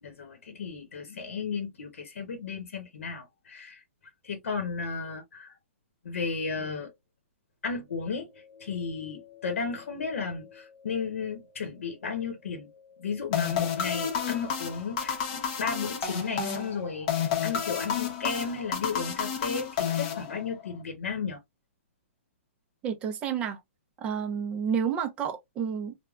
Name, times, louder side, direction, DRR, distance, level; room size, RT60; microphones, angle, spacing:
voice 1, 0.0-3.8 4.2-5.6 6.0-6.9 7.6-21.4, left 5 dB, 90° left, 0.9 m, -34 dB
sound 1, 13.3-20.7, left 7 dB, 35° left, 0.7 m, -31 dB
voice 2, 22.8-23.6 24.0-26.0, right 7 dB, 15° right, 0.5 m, -30 dB
3.4 x 2.1 x 2.3 m
hypercardioid pair, 160°, 7 cm